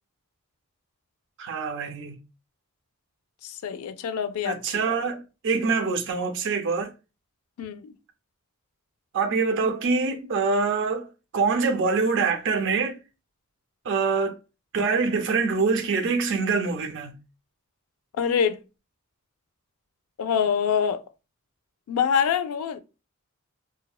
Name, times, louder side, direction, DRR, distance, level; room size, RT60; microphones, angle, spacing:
voice 1, 1.4-2.2 4.4-6.9 9.1-11.1 11.3-13.0 13.8-14.4 14.7-17.1, right 4 dB, 60° right, 0.5 m, -25 dB
voice 2, 3.4-4.6 4.9-5.0 7.6-7.9 18.2-18.6 20.2-21.0 21.9-22.8, left 7 dB, 80° left, 0.3 m, -25 dB
2.7 x 2.1 x 2.3 m
head